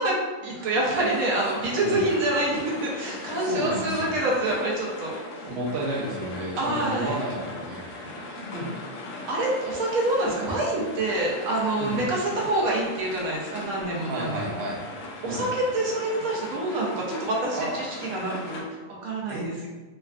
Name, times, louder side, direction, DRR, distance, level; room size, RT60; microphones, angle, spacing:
voice 1, 0.0-5.1 6.6-7.2 9.3-14.5 15.2-19.7, right 1 dB, 90° right, -3 dB, 1.1 m, -27 dB
sound 1, 0.9-18.6, left 2 dB, 75° left, 0.9 m, -39 dB
voice 2, 3.4-4.2 5.4-8.7 11.8-12.0 14.1-14.8 15.2-15.4 17.6-17.7 19.3-19.5, right 1 dB, 60° right, -2 dB, 0.8 m, -32 dB
3.3 x 2.3 x 2.3 m, 1.3 s
omnidirectional pair, 1.4 m